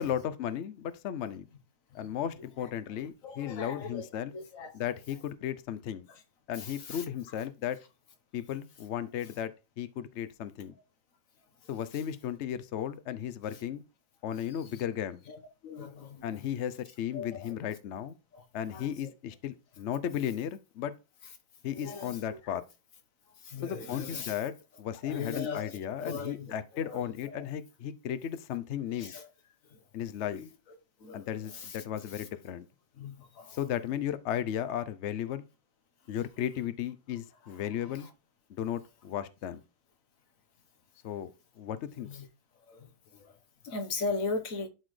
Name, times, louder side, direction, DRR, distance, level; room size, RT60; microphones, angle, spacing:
voice 1, 0.0-1.4 1.9-4.3 4.7-6.1 6.5-7.8 8.3-10.7 11.7-13.8 14.2-15.2 16.2-18.2 18.5-20.9 21.6-22.6 23.6-29.1 29.9-30.4 31.1-32.7 33.5-35.4 36.1-38.1 38.5-39.6 41.0-41.3 41.6-42.1, left 10 dB, 90° left, 0.6 m, -35 dB
voice 2, 2.6-4.7 6.1-6.2 6.6-7.0 13.5-13.6 14.7-14.8 15.3-16.5 17.1-17.5 18.3-18.4 18.7-19.1 21.7-22.6 23.4-24.4 25.0-27.4 28.9-29.3 29.7-29.8 30.3-30.5 31.0-31.8 32.1-32.2 33.0-33.6 37.5-38.1 42.0-42.3 42.7-43.4 43.6-44.7, left 4 dB, 50° left, 1.4 m, -40 dB
11.5 x 4.1 x 3.2 m
omnidirectional pair, 2.0 m